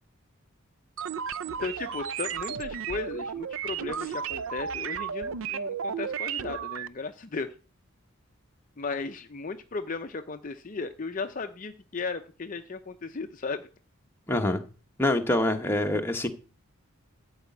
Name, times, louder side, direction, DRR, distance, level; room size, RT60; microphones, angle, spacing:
sound 1, 1.0-6.9, right 7 dB, 65° right, 0.5 m, -33 dB
voice 1, 1.6-7.5 8.8-13.6, left 4 dB, 35° left, 0.5 m, -35 dB
voice 2, 14.3-14.6 15.0-16.3, left 1 dB, 10° left, 1.0 m, -25 dB
13.0 x 4.9 x 8.3 m
head